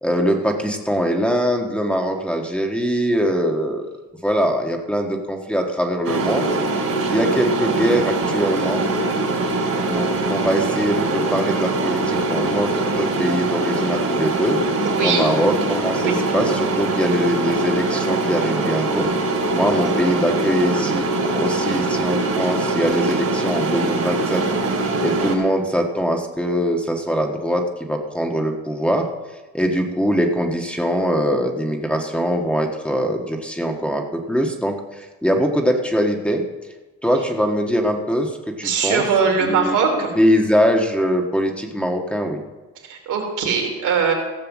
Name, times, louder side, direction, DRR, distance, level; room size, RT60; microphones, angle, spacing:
voice 1, 0.0-3.9 4.2-6.5 7.1-8.8 9.9-12.7 13.0-14.6 15.0-19.1 19.5-24.4 24.7-29.1 29.5-36.4 37.0-39.0 39.4-39.7 40.1-42.4, equal, 5° left, 2 dB, 1.5 m, -22 dB
sound 1, 6.0-25.3, right 2 dB, 55° right, 3.4 m, -22 dB
voice 2, 14.8-15.3 16.0-16.2 19.6-19.9 38.6-40.1 42.9-44.1, right 5 dB, 80° right, 1 dB, 3.2 m, -21 dB
16.0 x 5.7 x 7.3 m, 1.2 s
cardioid pair, 90°, 30 cm